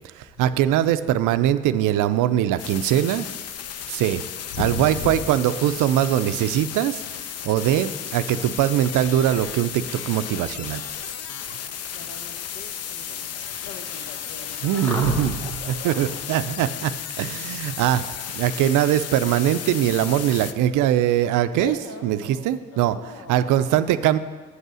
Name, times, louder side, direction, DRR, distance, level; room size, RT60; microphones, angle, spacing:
voice 1, 0.1-3.3 3.9-4.2 4.6-7.0 7.4-10.8 11.5-11.6 14.6-15.3 15.7-18.1 18.3-21.8 22.0-23.0 23.3-24.2, right 11 dB, 85° right, 13 dB, 0.5 m, -22 dB
sound 1, 2.6-20.5, left 9 dB, 55° left, 0.5 m, -34 dB
voice 2, 4.5-5.2 11.9-16.4 21.4-24.2, left 4 dB, 75° left, 5 dB, 1.1 m, -37 dB
sound 2, 7.4-16.3, right 1 dB, 5° left, 1.1 m, -41 dB
7.9 x 5.5 x 6.2 m, 1.4 s
cardioid pair, 90°, 30 cm